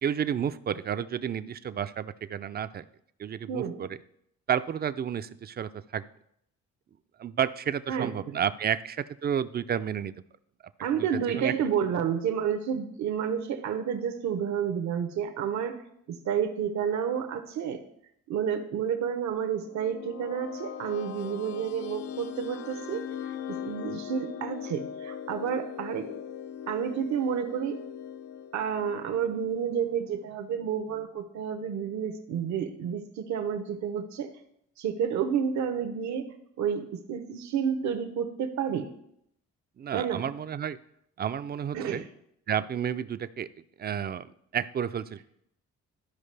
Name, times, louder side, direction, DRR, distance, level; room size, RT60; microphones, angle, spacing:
voice 1, 0.0-2.8 3.2-3.9 4.5-6.0 7.2-10.1 11.0-11.5 39.8-40.8 41.2-42.0 42.5-43.5 43.8-45.2, right 8 dB, 35° right, 13 dB, 0.4 m, -31 dB
voice 2, 7.9-8.4 10.8-15.8 16.1-17.8 18.3-23.1 23.5-26.1 26.7-27.8 28.5-34.3 34.8-36.3 36.6-38.9 39.9-40.2 41.7-42.0, right 8 dB, 70° right, 7 dB, 0.9 m, -30 dB
sound 1, 19.4-30.3, left 9 dB, 65° left, 0.5 m, -40 dB
13.0 x 5.0 x 3.3 m, 0.74 s
cardioid pair, 75°, 29 cm